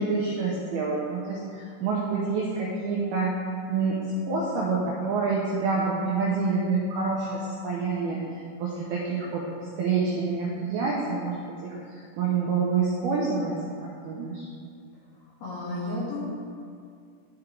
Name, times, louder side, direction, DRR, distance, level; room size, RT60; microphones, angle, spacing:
voice 1, 0.0-3.3 3.7-8.2 8.6-9.4 9.8-13.5 14.0-14.5, right 4 dB, 85° right, -4 dB, 2.2 m, -27 dB
voice 2, 15.4-16.2, left 2 dB, 60° left, -8 dB, 3.4 m, -32 dB
13.5 x 4.6 x 3.7 m, 2.3 s
omnidirectional pair, 5.6 m